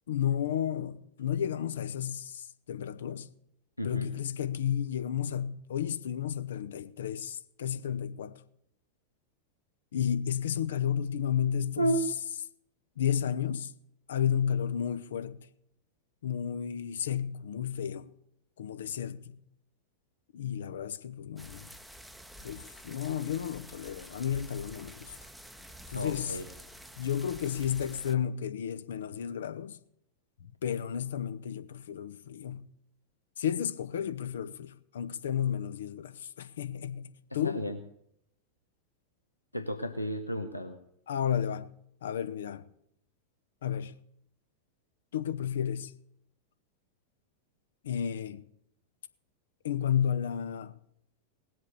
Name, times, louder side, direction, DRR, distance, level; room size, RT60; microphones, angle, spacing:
voice 1, 0.1-3.3 3.8-8.4 9.9-12.0 13.0-13.7 14.1-15.5 16.2-18.1 18.6-19.4 20.3-21.7 22.4-25.1 25.9-26.4 27.0-29.8 30.4-32.7 33.4-37.6 41.1-41.7 42.0-42.6 43.6-43.9 45.1-45.9 47.8-48.4 49.6-50.7, left 9 dB, 60° left, 0.8 m, -32 dB
voice 2, 3.8-4.1 11.8-12.0 25.9-26.5 37.4-37.8 39.5-40.8, right 1 dB, 85° left, 1.0 m, -32 dB
sound 1, 21.4-28.2, equal, ahead, 0.8 m, -49 dB
19.0 x 7.8 x 6.7 m
figure-of-eight pair, 90°, 0 cm